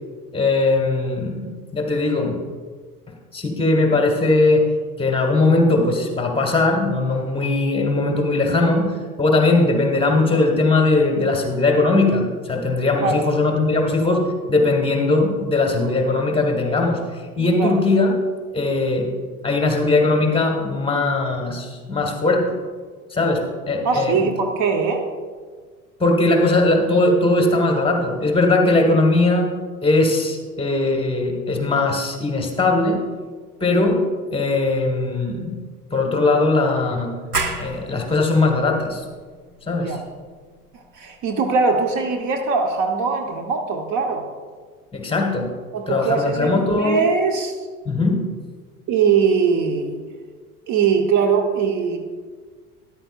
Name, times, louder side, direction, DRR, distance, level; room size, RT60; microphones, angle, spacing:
voice 1, 0.3-2.4 3.3-4.7 5.0-18.1 18.5-19.1 19.4-22.6 23.1-24.3 26.0-29.5 29.8-33.0 33.6-35.6 35.9-37.1 37.6-39.0 39.7-40.0 44.9-45.5 45.9-47.0 47.8-48.2, left 2 dB, 10° left, 2 dB, 1.5 m, -19 dB
voice 2, 23.8-25.1 39.8-40.0 40.7-44.2 45.7-47.7 48.9-50.0 50.7-52.0, right 5 dB, 40° right, 4 dB, 1.0 m, -21 dB
sound 1, 37.3-42.7, right 3 dB, 90° right, 0.9 m, -33 dB
13.0 x 11.0 x 2.5 m, 1.6 s
figure-of-eight pair, 70°, 46 cm